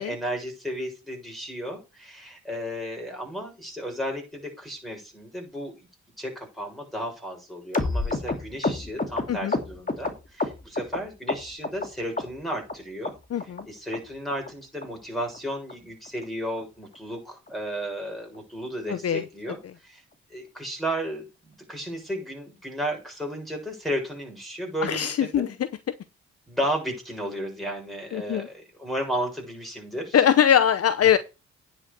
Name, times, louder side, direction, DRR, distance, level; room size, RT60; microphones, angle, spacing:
voice 1, 0.0-5.9 6.2-13.2 13.4-20.0 20.3-25.5 26.5-30.2, equal, ahead, 7.1 m, -33 dB
sound 1, 7.7-11.0 11.3-11.9 12.2-12.7 13.0-13.1 13.4-13.6 13.9-14.0 14.3-14.5 14.8-14.9 15.2-15.4 15.7-15.8 16.0-16.2 16.6-16.7 16.9-17.1 17.5-17.6, left 3 dB, 25° left, 2.4 m, -29 dB
voice 2, 13.3-13.7 18.9-19.2 24.8-25.5 28.1-28.5 30.1-31.2, left 9 dB, 55° left, 0.8 m, -21 dB
9.8 x 5.1 x 6.5 m
supercardioid pair, 65°, 30 cm